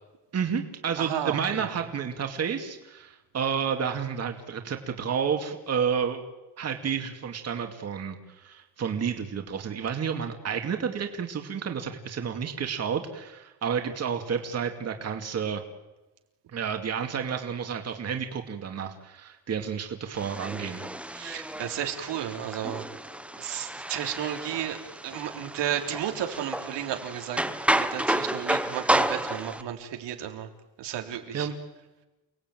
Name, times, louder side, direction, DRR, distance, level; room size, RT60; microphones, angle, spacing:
voice 1, 0.3-6.2 6.6-15.6 16.5-20.8 31.3-31.6, right 7 dB, 35° right, 5 dB, 2.4 m, -30 dB
voice 2, 1.0-1.7 21.1-22.9 23.4-24.8 25.0-27.4 27.7-30.5 30.8-31.5, right 10 dB, 85° right, 4 dB, 3.7 m, -33 dB
sound 1, 20.1-29.6, right 1 dB, 5° right, 1.0 m, -31 dB
29.5 x 19.5 x 9.3 m, 1.1 s
cardioid pair, 170°, 41 cm